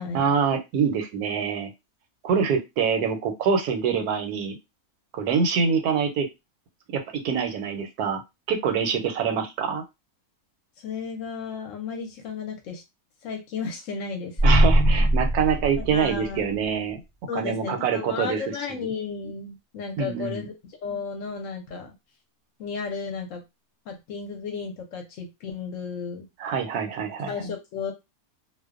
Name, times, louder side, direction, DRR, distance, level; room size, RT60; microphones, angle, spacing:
voice 1, 0.1-1.7 2.2-4.6 5.1-6.3 6.9-8.2 8.5-9.8 14.4-17.0 17.3-18.4 18.8-18.9 20.0-20.4 26.4-27.3, right 6 dB, 85° right, 6 dB, 1.1 m, -25 dB
voice 2, 10.8-12.8 13.2-14.7 15.8-16.4 17.3-20.5 20.8-21.9 22.6-23.4 23.9-26.3 27.3-27.9, left 5 dB, 65° left, 3 dB, 0.9 m, -33 dB
sound 1, 14.4-16.6, right 1 dB, 25° left, 0.7 m, -21 dB
2.5 x 2.1 x 2.3 m, 0.22 s
omnidirectional pair, 1.6 m